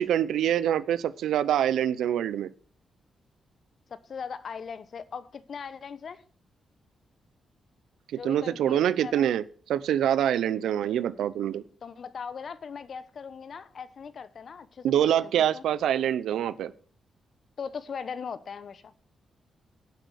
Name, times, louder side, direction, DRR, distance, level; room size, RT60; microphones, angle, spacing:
voice 1, 0.0-2.5 8.1-9.4 9.7-11.6 14.8-16.7, right 10 dB, 85° right, 0.7 m, -25 dB
voice 2, 3.9-6.2 8.1-9.3 11.8-15.6 17.6-18.9, left 6 dB, 60° left, 0.9 m, -39 dB
12.0 x 6.2 x 6.5 m
cardioid pair, 70°, 0 cm